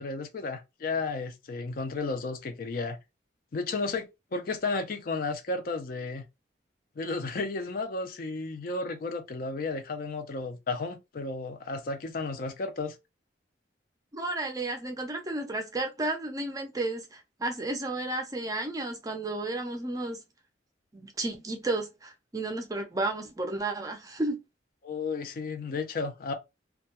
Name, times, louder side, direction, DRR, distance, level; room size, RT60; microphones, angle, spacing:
voice 1, 0.0-3.0 3.5-6.3 7.0-13.0 24.8-26.3, left 3 dB, 50° left, 0.4 m, -33 dB
voice 2, 14.1-20.2 20.9-24.4, right 2 dB, 20° right, 0.4 m, -32 dB
2.2 x 2.1 x 2.8 m
head